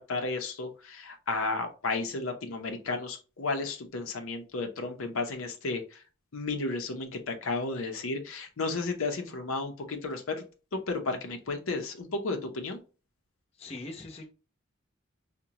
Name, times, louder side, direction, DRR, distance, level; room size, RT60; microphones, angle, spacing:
voice 1, 0.1-6.0 6.3-10.4 10.7-12.8, left 3 dB, 85° left, 4 dB, 0.7 m, -33 dB
voice 2, 13.6-14.3, left 2 dB, 30° left, 0 dB, 0.8 m, -41 dB
4.9 x 2.2 x 2.8 m, 0.34 s
head